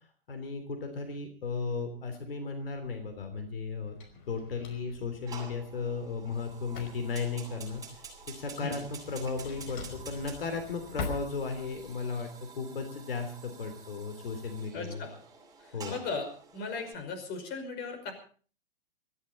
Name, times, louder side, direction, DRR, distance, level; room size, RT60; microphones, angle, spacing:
voice 1, 0.3-4.0 4.3-7.8 8.3-8.8 9.1-12.3 12.5-15.1 15.7-15.9, left 4 dB, 70° left, 6 dB, 3.4 m, -35 dB
Drawer open or close, 2.6-11.9, left 4 dB, 55° left, 5.2 m, -45 dB
Fire, 5.3-16.9, right 5 dB, 10° right, 7.7 m, -49 dB
voice 2, 14.7-15.2 15.6-18.1, left 4 dB, 35° left, 6 dB, 5.5 m, -37 dB
22.5 x 15.0 x 4.2 m, 0.41 s
hypercardioid pair, 115°, 29 cm